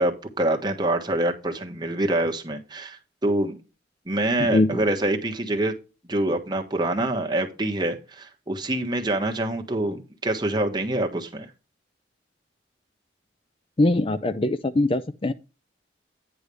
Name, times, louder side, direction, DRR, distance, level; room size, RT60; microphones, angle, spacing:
voice 1, 0.0-3.6 4.1-5.7 6.1-11.5, right 1 dB, 25° right, 1.3 m, -25 dB
voice 2, 4.4-4.8 13.8-15.3, left 2 dB, 30° left, 0.4 m, -22 dB
9.7 x 3.3 x 6.8 m
head